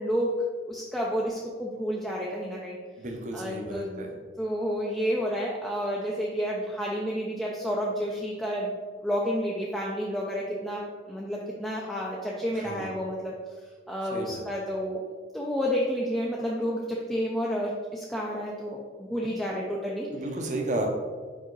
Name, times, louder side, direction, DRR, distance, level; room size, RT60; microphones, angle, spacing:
voice 1, 0.0-2.8 3.3-4.1 4.4-8.8 9.0-13.3 13.9-15.0 15.3-20.1, equal, ahead, -4 dB, 0.5 m, -30 dB
voice 2, 3.0-4.1 12.5-13.0 14.1-14.4 20.1-20.9, right 1 dB, 40° right, 2 dB, 0.8 m, -33 dB
5.1 x 5.1 x 3.9 m, 1.5 s
head